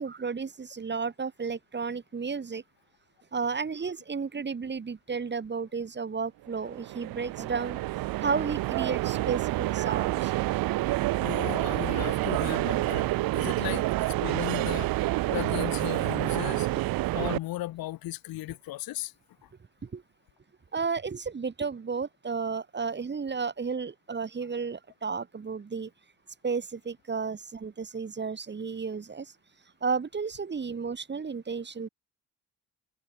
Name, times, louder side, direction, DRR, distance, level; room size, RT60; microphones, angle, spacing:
voice 1, 0.0-2.6 3.3-7.8 8.2-10.3 19.8-20.0 20.7-25.9 26.4-29.3 29.8-31.9, right 5 dB, 30° right, 1.7 m, -33 dB
sound 1, 6.5-17.4, right 17 dB, 70° right, 1.2 m, -28 dB
voice 2, 10.8-13.1 13.3-16.7 17.1-19.1 19.4-19.5, left 16 dB, 70° left, 3.9 m, -36 dB
supercardioid pair, 60°, 36 cm